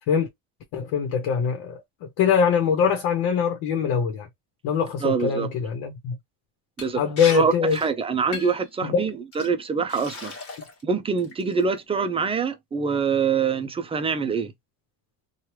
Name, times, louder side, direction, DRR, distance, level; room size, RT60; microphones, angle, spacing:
voice 1, 0.7-1.8 2.2-4.3 4.6-6.1 7.0-7.8 8.8-9.1, left 7 dB, 90° left, 0.9 m, -23 dB
voice 2, 5.0-5.5 6.8-7.0 7.3-10.3 10.8-14.5, right 5 dB, 15° right, 0.3 m, -25 dB
Liquid, 6.8-6.9 7.2-7.4 7.7-7.9 8.3-8.7 9.3-9.5 9.9-10.8 11.2-11.6, left 4 dB, 35° left, 1.3 m, -36 dB
3.1 x 2.3 x 2.9 m
cardioid pair, 155°, 40 cm